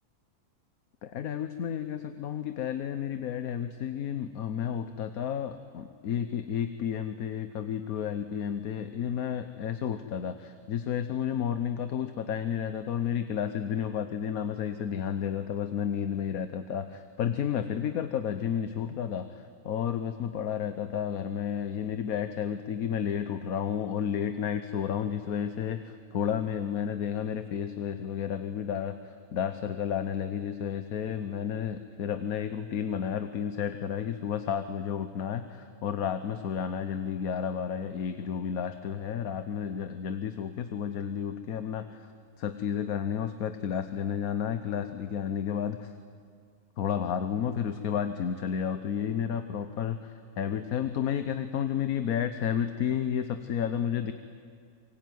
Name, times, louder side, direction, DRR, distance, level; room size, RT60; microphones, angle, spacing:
voice 1, 1.0-42.1 42.4-45.9 46.8-54.1, left 8 dB, 75° left, 9 dB, 1.4 m, -31 dB
25.5 x 23.0 x 9.4 m, 2.2 s
omnidirectional pair, 1.6 m